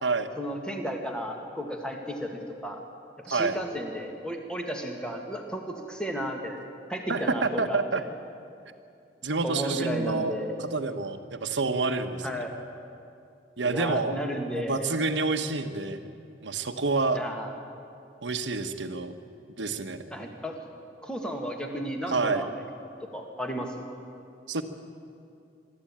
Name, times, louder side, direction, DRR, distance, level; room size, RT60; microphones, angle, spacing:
voice 1, 0.4-2.8 3.2-6.6 6.9-7.8 9.4-10.6 12.2-12.6 13.6-14.9 17.1-17.5 19.7-19.8 20.1-20.6 21.0-22.5 23.1-23.8, equal, 5° left, 2 dB, 1.9 m, -33 dB
voice 2, 7.1-8.0 9.2-10.3 10.6-12.3 13.6-14.1 14.5-16.0 16.4-17.2 18.2-19.1 19.6-20.0 22.1-22.4 24.5-24.6, right 3 dB, 80° right, 8 dB, 1.2 m, -28 dB
23.5 x 13.5 x 8.8 m, 2.5 s
head